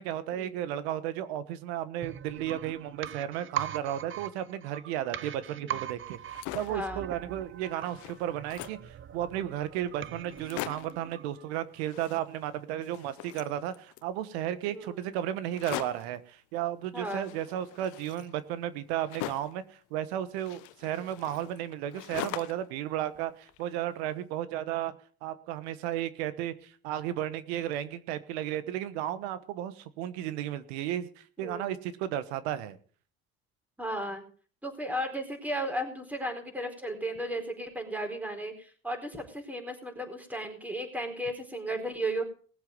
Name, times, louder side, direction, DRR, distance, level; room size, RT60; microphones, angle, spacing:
voice 1, 0.0-24.9 25.2-32.8, right 11 dB, 90° right, 14 dB, 1.2 m, -34 dB
sound 1, 2.0-11.7 12.0-12.1, right 10 dB, 40° right, 0.8 m, -41 dB
sound 2, 6.1-6.9 7.4-7.5 7.7-8.9 9.6-9.7 9.9-10.0 10.3-11.0 11.8-12.6 12.8-14.1 15.5-16.2 17.1-19.6 20.4-22.7 23.1-24.0, left 16 dB, 70° left, 1.0 m, -42 dB
voice 2, 6.7-7.0 14.7-15.0 16.9-17.3 31.4-31.8 33.8-34.2 34.6-42.2, right 1 dB, 5° right, 4 dB, 4.3 m, -35 dB
19.5 x 7.8 x 5.3 m, 0.43 s
supercardioid pair, 90°, 31 cm